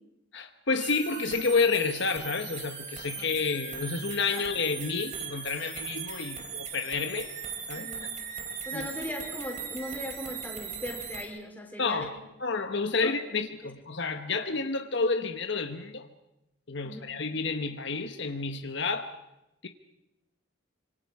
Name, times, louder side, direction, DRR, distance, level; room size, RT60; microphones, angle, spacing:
voice 1, 0.3-7.3 7.7-7.9 8.7-8.9 11.8-12.1 12.4-16.1 16.7-19.1 19.6-19.7, left 4 dB, 55° left, 7 dB, 1.1 m, -30 dB
sound 1, 0.8-11.2, right 6 dB, 35° right, 3.1 m, -39 dB
voice 2, 7.7-8.1 8.7-12.1 13.0-13.1 13.6-13.7 16.8-17.1, left 1 dB, 10° left, 1 dB, 4.0 m, -39 dB
26.5 x 25.5 x 4.8 m, 0.91 s
head